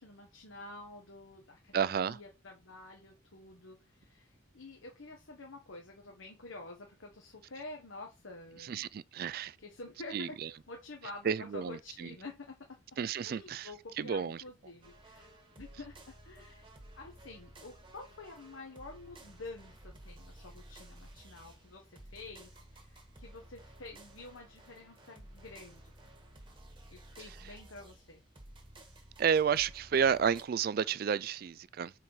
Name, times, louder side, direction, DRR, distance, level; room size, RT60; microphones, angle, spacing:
voice 1, 0.0-8.9 9.6-12.8 13.2-15.3 15.6-16.7 16.9-25.9 26.9-28.2, left 2 dB, 85° left, 1.2 m, -49 dB
voice 2, 1.7-2.2 8.7-9.5 10.1-10.3 11.3-12.1 13.0-13.7 14.0-14.4 29.2-31.9, right 7 dB, 50° right, 0.3 m, -31 dB
sound 1, 14.8-30.4, right 1 dB, 25° right, 1.4 m, -54 dB
4.8 x 4.4 x 5.5 m
head